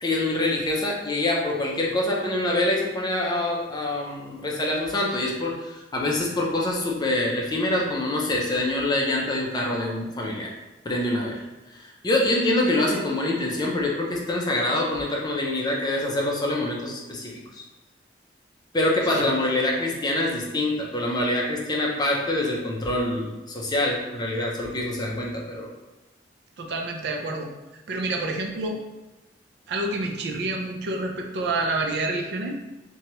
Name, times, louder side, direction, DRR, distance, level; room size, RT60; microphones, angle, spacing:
voice 1, 0.0-10.5 10.8-11.4 11.8-17.6 18.7-25.7, left 1 dB, 25° left, -2 dB, 0.5 m, -25 dB
voice 2, 26.6-27.5 27.9-28.8 29.7-32.6, right 2 dB, 65° right, 2 dB, 0.4 m, -28 dB
2.9 x 2.2 x 2.9 m, 1.1 s
head